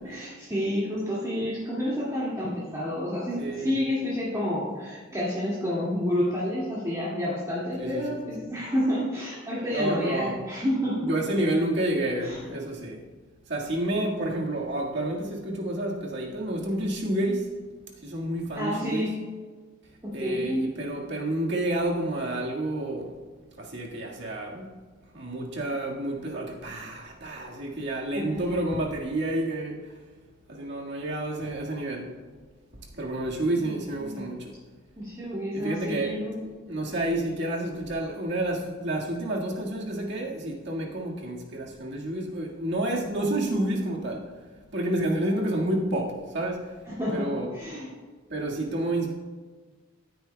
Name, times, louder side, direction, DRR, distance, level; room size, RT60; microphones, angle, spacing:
voice 1, 0.0-11.2 12.2-12.5 18.6-19.1 20.0-20.7 28.1-28.4 33.7-33.8 34.0-34.2 35.0-36.4 46.9-47.9, equal, 20° right, -9 dB, 2.1 m, -29 dB
voice 2, 3.4-3.8 7.8-8.3 9.7-10.4 11.0-13.0 13.5-17.5 18.0-19.1 20.1-23.1 23.6-24.7 25.1-30.0 30.5-32.1 32.9-34.5 35.5-44.3 44.7-46.7 47.1-47.5 48.3-49.1, right 1 dB, 60° right, -1 dB, 1.7 m, -29 dB
15.0 x 9.2 x 2.2 m, 1.4 s
head